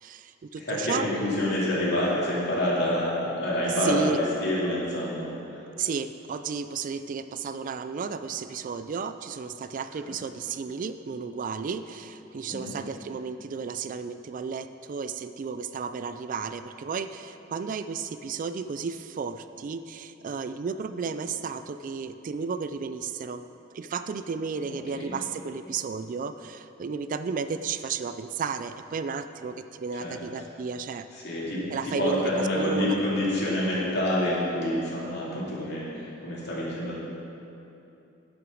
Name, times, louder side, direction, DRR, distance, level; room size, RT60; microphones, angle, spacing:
voice 1, 0.0-1.1 3.7-4.2 5.8-23.4 23.7-31.1 31.7-33.0, right 5 dB, 45° right, 11 dB, 0.3 m, -33 dB
voice 2, 0.6-5.7 12.5-12.7 24.7-25.1 30.0-30.2 31.1-37.0, left 1 dB, 60° left, -6 dB, 2.7 m, -27 dB
11.0 x 6.0 x 6.3 m, 2.9 s
head